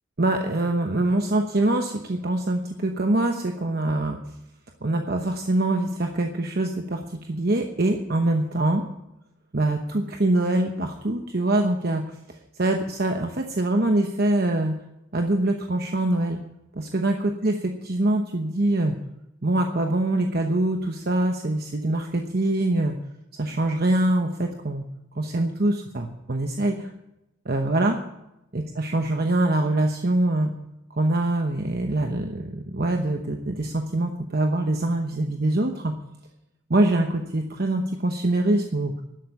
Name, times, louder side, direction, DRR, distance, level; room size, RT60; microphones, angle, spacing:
voice 1, 0.2-4.2 4.8-8.8 9.5-14.8 15.1-16.4 16.7-19.0 19.4-23.0 23.4-24.8 25.1-26.9 27.4-28.0 28.5-30.5 30.9-35.9 36.7-38.9, right 1 dB, 50° right, 4 dB, 1.0 m, -24 dB
12.0 x 7.9 x 9.8 m, 0.88 s
head